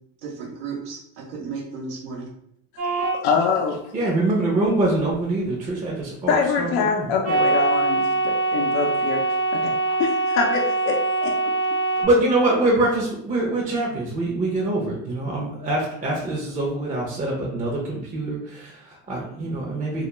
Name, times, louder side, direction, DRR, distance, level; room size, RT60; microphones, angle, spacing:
voice 1, 0.2-2.3, right 4 dB, 85° right, 0 dB, 0.8 m, -34 dB
voice 2, 2.8-3.8 6.3-9.2 9.6-9.7 10.0-11.0 11.2-11.3, left 5 dB, 75° left, 0 dB, 0.6 m, -24 dB
sound 1, 2.8-3.2 7.2-12.1, right 3 dB, 55° right, 1.0 m, -23 dB
voice 3, 3.9-7.1 12.0-20.0, right 2 dB, 25° right, -3 dB, 0.6 m, -24 dB
2.3 x 2.1 x 3.0 m, 0.70 s
supercardioid pair, 105°, 35 cm